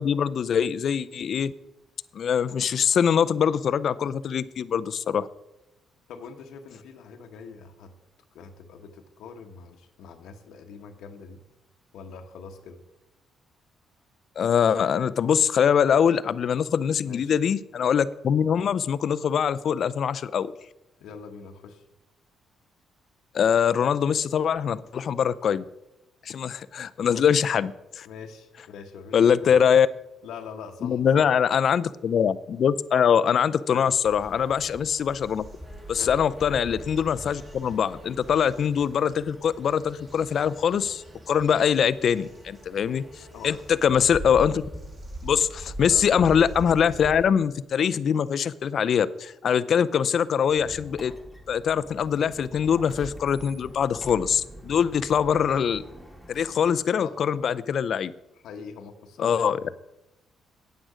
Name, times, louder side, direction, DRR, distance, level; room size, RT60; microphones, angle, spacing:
voice 1, 0.0-1.5 2.1-5.3 14.4-20.5 23.3-25.6 26.3-28.1 29.1-29.9 30.8-35.4 35.9-44.6 45.2-51.1 51.5-55.8 56.3-58.1 59.2-59.6, left 7 dB, 60° left, 16 dB, 0.5 m, -23 dB
voice 2, 6.1-7.9 8.3-11.4 11.9-12.8 17.1-17.4 21.0-21.8 28.0-29.5 30.2-31.3 33.7-33.9 35.9-36.1 43.3-43.6 45.9-46.1 57.0-57.2 58.3-59.7, left 5 dB, 85° left, 3 dB, 1.0 m, -43 dB
sound 1, 34.1-47.3, right 1 dB, 30° right, 4.1 m, -42 dB
Squeak, 50.5-56.9, right 1 dB, 10° right, 2.3 m, -45 dB
9.2 x 8.9 x 5.0 m, 0.94 s
cardioid pair, 90°, 0 cm